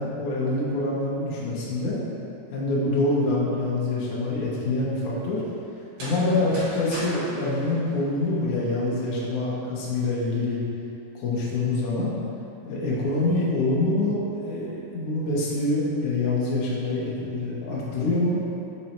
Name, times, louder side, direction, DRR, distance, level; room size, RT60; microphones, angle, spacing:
voice 1, 0.0-2.0 2.5-5.4 6.0-10.6 11.1-12.1 12.6-18.4, left 2 dB, 65° left, -7 dB, 2.2 m, -25 dB
sound 1, 5.8-8.7, right 1 dB, 60° right, 1.3 m, -38 dB
5.4 x 4.6 x 4.3 m, 2.8 s
omnidirectional pair, 4.3 m